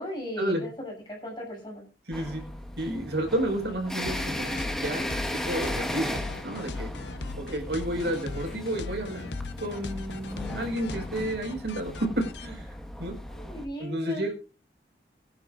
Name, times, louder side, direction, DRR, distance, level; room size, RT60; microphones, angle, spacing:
voice 1, 0.0-1.8 13.3-14.3, left 1 dB, 25° left, 0 dB, 6.7 m, -36 dB
sound 1, 2.1-13.7, equal, 5° left, 1.4 m, -36 dB
voice 2, 2.1-2.5 2.8-9.3 9.6-13.2 13.8-14.3, right 1 dB, 75° right, 2 dB, 5.0 m, -31 dB
sound 2, 4.1-12.5, left 3 dB, 85° left, 0.9 m, -39 dB
21.0 x 10.5 x 2.5 m, 0.33 s
head